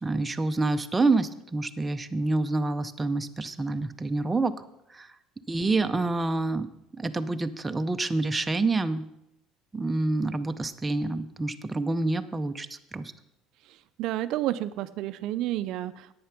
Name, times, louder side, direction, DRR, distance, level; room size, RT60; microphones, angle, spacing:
voice 1, 0.0-4.5 4.9-5.2 5.5-6.7 6.9-9.0 9.7-13.1, right 3 dB, 10° right, 8 dB, 0.6 m, -27 dB
voice 2, 13.7-16.1, right 14 dB, 60° right, 13 dB, 0.5 m, -31 dB
10.0 x 8.6 x 5.9 m, 0.84 s
cardioid pair, 145°, 0 cm